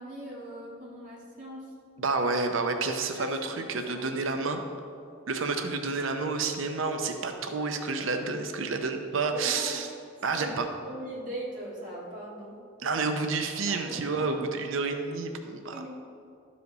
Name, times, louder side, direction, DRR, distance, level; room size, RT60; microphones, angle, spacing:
voice 1, 0.0-1.7 3.2-4.7 9.3-9.8 10.4-12.6 13.7-14.4 15.7-15.9, right 1 dB, 40° right, -7 dB, 1.9 m, -41 dB
voice 2, 2.0-4.6 5.3-9.9 10.2-10.7 12.8-15.8, right 4 dB, 75° right, 5 dB, 0.6 m, -29 dB
12.0 x 5.0 x 4.0 m, 2.4 s
head